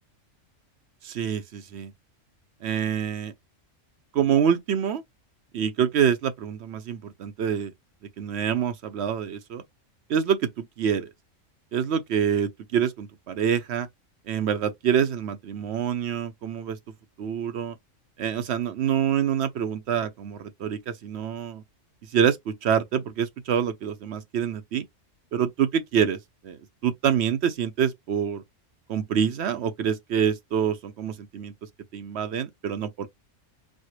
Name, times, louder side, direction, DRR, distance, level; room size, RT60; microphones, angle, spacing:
voice 1, 1.0-1.9 2.6-3.3 4.1-5.0 5.5-7.7 8.2-9.6 10.1-11.1 11.7-13.9 14.3-16.8 17.2-17.8 18.2-21.6 22.1-24.9 25.3-26.2 26.4-28.4 28.9-31.5 31.9-33.1, right 8 dB, 65° right, 0.8 m, -26 dB
4.3 x 2.1 x 3.0 m
omnidirectional pair, 1.3 m